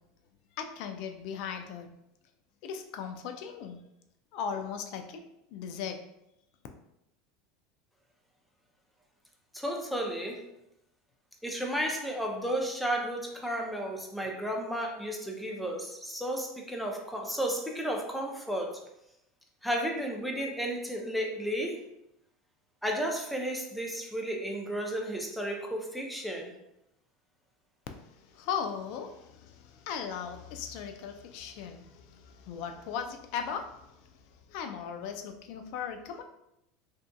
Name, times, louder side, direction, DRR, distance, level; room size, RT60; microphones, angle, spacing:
voice 1, 0.6-1.9 2.6-3.8 4.3-5.2 5.5-6.0 28.1-34.1 34.5-36.2, left 7 dB, 65° left, 6 dB, 0.3 m, -38 dB
voice 2, 9.5-10.4 11.4-18.8 19.6-21.8 22.8-26.5, equal, ahead, 1 dB, 0.5 m, -33 dB
2.5 x 2.5 x 2.2 m, 0.83 s
supercardioid pair, 105°, 0 cm